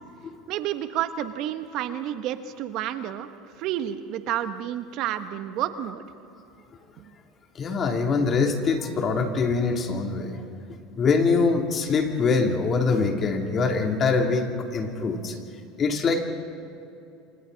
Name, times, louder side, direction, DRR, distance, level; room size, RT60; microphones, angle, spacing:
voice 1, 0.5-3.3 3.6-6.0 7.0-7.1, right 11 dB, 60° right, 9 dB, 1.2 m, -30 dB
voice 2, 7.6-10.4 11.0-15.4 15.8-16.3, left 4 dB, 35° left, 3 dB, 3.0 m, -24 dB
28.0 x 26.5 x 4.1 m, 2.7 s
supercardioid pair, 100°, 0 cm